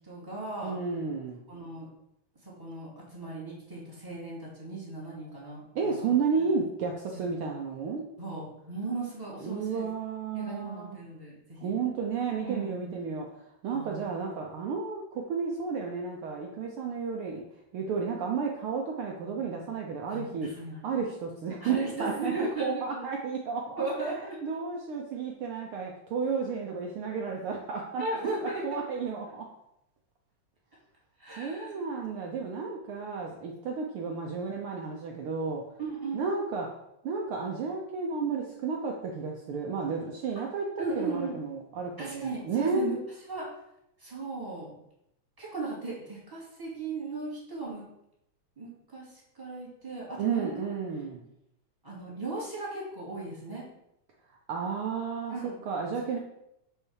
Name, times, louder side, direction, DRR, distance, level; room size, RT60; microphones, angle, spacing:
voice 1, 0.0-0.8 1.5-1.9 2.4-6.1 7.1-7.2 8.2-9.9 10.3-11.8 12.4-13.1 13.7-14.1 20.1-20.8 21.6-23.0 23.8-24.4 28.0-28.9 31.2-31.8 35.8-36.2 40.8-41.4 42.0-43.0 43.3-43.5 44.0-44.8 45.4-47.9 48.6-50.5 51.8-53.7 55.3-55.6 56.0-56.2, right 3 dB, 10° right, -6 dB, 1.9 m, -36 dB
voice 2, 0.6-1.4 5.7-8.1 9.4-11.0 11.6-13.3 13.6-17.4 17.7-20.5 20.8-23.8 24.4-28.0 28.4-29.5 31.4-35.6 36.1-36.7 37.0-42.9 50.2-51.3 54.5-56.2, right 5 dB, 80° right, 0 dB, 1.2 m, -32 dB
5.6 x 4.4 x 6.3 m, 0.81 s
omnidirectional pair, 3.4 m